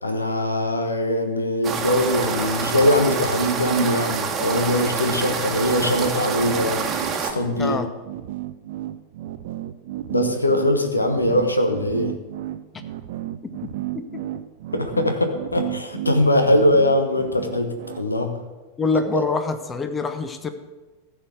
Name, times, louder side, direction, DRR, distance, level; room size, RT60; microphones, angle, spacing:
voice 1, 0.0-6.9 7.2-7.8 10.1-12.2 14.7-18.3 19.1-19.2, left 1 dB, 80° left, 6 dB, 1.3 m, -21 dB
sound 1, 1.6-7.3, right 6 dB, 25° right, 1.5 m, -27 dB
sound 2, 5.5-18.1, right 14 dB, 55° right, 0.6 m, -33 dB
voice 2, 7.6-7.9 13.4-14.2 18.8-20.5, left 4 dB, 15° left, 9 dB, 1.0 m, -26 dB
14.5 x 4.9 x 7.9 m, 1.2 s
figure-of-eight pair, 90°, 0 cm